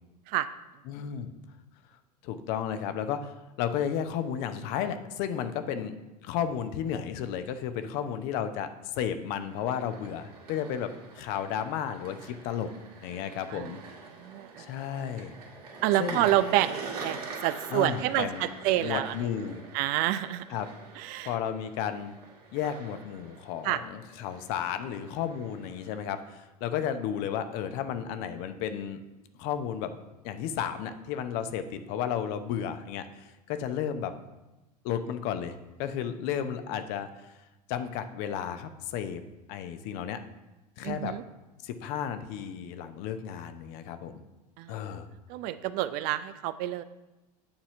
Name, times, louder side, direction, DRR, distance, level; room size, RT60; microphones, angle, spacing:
voice 1, 0.9-1.3 2.2-6.0 6.2-12.7 13.0-13.8 14.6-15.3 16.0-16.3 17.7-18.5 18.8-19.6 20.5-20.7 21.3-22.2 22.5-29.0 29.4-29.9 30.2-34.1 34.8-37.3 37.7-39.2 39.5-40.2 40.8-41.1 41.6-44.2 44.7-45.1, left 9 dB, 50° left, 10 dB, 0.8 m, -33 dB
sound 1, 9.4-26.4, right 4 dB, 65° right, 1.8 m, -45 dB
voice 2, 14.2-14.6 15.8-16.8 17.0-19.1 19.7-20.4 21.0-21.3 23.6-23.8 40.8-41.2 44.6-44.7 45.3-46.8, right 14 dB, 45° right, 14 dB, 0.4 m, -28 dB
8.7 x 4.3 x 5.7 m, 1.0 s
figure-of-eight pair, 80°, 21 cm